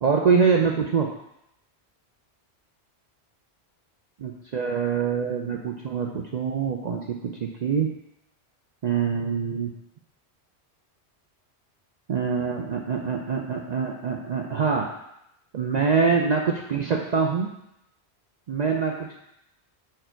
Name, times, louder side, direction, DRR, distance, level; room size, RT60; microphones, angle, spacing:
voice 1, 0.0-1.1 4.2-7.9 8.8-9.7 12.1-14.9 15.5-17.5 18.5-19.2, right 5 dB, 55° right, 1 dB, 0.5 m, -24 dB
4.8 x 4.5 x 4.4 m, 0.81 s
omnidirectional pair, 1.1 m